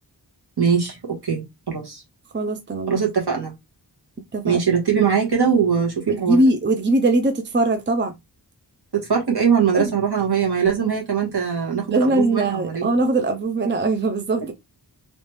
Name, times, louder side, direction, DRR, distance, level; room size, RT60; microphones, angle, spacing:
voice 1, 0.6-1.4 1.7-2.0 2.9-3.5 4.4-6.4 8.9-12.9, right 7 dB, 65° right, 1.6 m, -21 dB
voice 2, 2.3-2.9 4.3-4.6 5.0-5.1 6.1-8.1 9.7-9.9 11.9-14.5, right 2 dB, 25° right, 0.5 m, -21 dB
3.3 x 3.1 x 3.0 m
wide cardioid pair, 85°, 42 cm